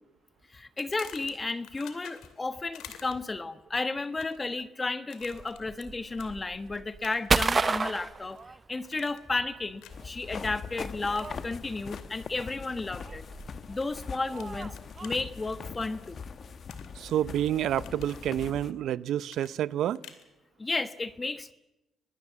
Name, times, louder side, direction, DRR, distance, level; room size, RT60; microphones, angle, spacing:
voice 1, 0.5-8.4 8.7-13.3 13.7-14.7 15.0-16.2 20.6-21.5, left 3 dB, 25° left, 12 dB, 1.3 m, -33 dB
sound 1, 0.8-2.4 2.7-3.4 4.0-4.5 5.1-5.9 6.1-6.3 7.0-7.4 7.8-8.4 8.8-9.3 9.8-10.1 11.0-11.3 11.9-12.1 13.4-13.8 14.4-15.1 16.7-17.3 17.6-18.2 19.3-20.3, left 10 dB, 90° left, 2.6 m, -49 dB
sound 2, 5.2-9.1 9.4-15.1, right 4 dB, 30° right, 0.7 m, -32 dB
sound 3, 9.9-18.7, left 6 dB, 50° left, 1.4 m, -42 dB
voice 2, 17.0-20.0, right 11 dB, 75° right, 18 dB, 0.7 m, -29 dB
25.5 x 20.0 x 7.5 m, 0.99 s
cardioid pair, 90°, 0 cm